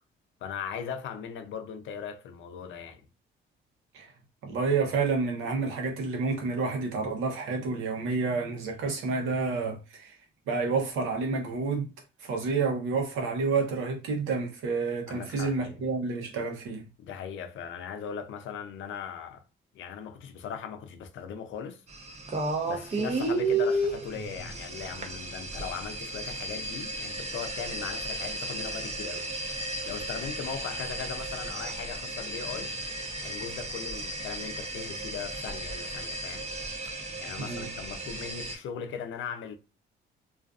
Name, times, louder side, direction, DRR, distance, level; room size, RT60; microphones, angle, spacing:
voice 1, 0.4-3.0 15.1-15.8 17.0-19.4 19.7-21.8 22.6-32.7 33.2-36.5 37.2-39.5, left 7 dB, 75° left, 0.5 m, -39 dB
voice 2, 4.4-10.2 10.5-11.9 12.2-16.9 37.4-37.7, right 4 dB, 90° right, 0.8 m, -29 dB
sound 1, 21.9-38.6, right 2 dB, 35° right, 0.6 m, -34 dB
2.4 x 2.4 x 2.3 m
cardioid pair, 90°, 20 cm